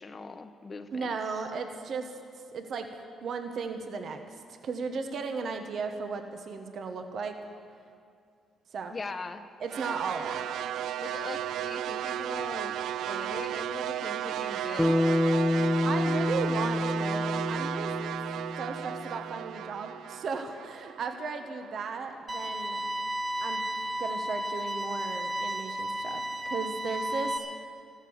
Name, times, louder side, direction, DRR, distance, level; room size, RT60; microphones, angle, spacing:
voice 1, 0.0-1.2 8.9-9.4 11.0-12.8 13.0-15.0, left 4 dB, 35° left, 9 dB, 0.9 m, -41 dB
voice 2, 0.9-2.2 2.5-7.4 8.7-8.9 9.6-10.5 15.8-17.9 18.6-22.8 23.4-23.6 24.0-27.4, right 5 dB, 60° right, 6 dB, 1.2 m, -35 dB
sound 1, 9.7-21.9, right 11 dB, 80° right, 0.3 m, -34 dB
Bass guitar, 14.8-19.2, left 1 dB, 5° left, 0.3 m, -28 dB
sound 2, 22.3-27.4, right 1 dB, 30° right, 1.7 m, -33 dB
14.5 x 12.5 x 7.2 m, 2.3 s
cardioid pair, 90°, 0 cm